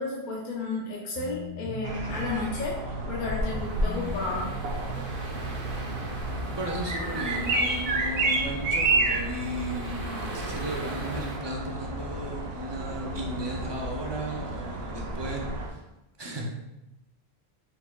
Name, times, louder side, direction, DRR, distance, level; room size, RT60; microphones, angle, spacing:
voice 1, 0.0-4.5, left 3 dB, 50° left, -4 dB, 0.8 m, -32 dB
sound 1, 1.1-6.5, right 2 dB, 85° left, 1.5 m, -38 dB
sound 2, 1.8-15.7, right 2 dB, 65° right, 0.9 m, -31 dB
sound 3, 3.4-11.4, right 2 dB, 90° right, 1.3 m, -42 dB
voice 2, 6.5-15.8 16.2-16.6, right 1 dB, 30° right, -1 dB, 0.6 m, -35 dB
4.6 x 4.1 x 2.3 m, 0.94 s
omnidirectional pair, 1.1 m